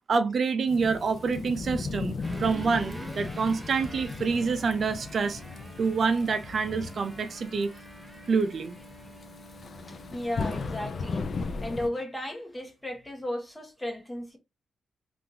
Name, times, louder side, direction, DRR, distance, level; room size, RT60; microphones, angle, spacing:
voice 1, 0.1-5.4 5.8-7.7 8.3-8.7, right 5 dB, 60° right, 0.5 m, -27 dB
Thunderstorm / Rain, 0.7-11.9, left 4 dB, 55° left, 0.4 m, -37 dB
sound 1, 2.2-11.6, right 1 dB, 15° right, 0.7 m, -46 dB
voice 2, 10.1-11.2 11.6-14.4, left 1 dB, 15° left, 1.1 m, -34 dB
3.6 x 2.5 x 2.6 m
cardioid pair, 70°, 0 cm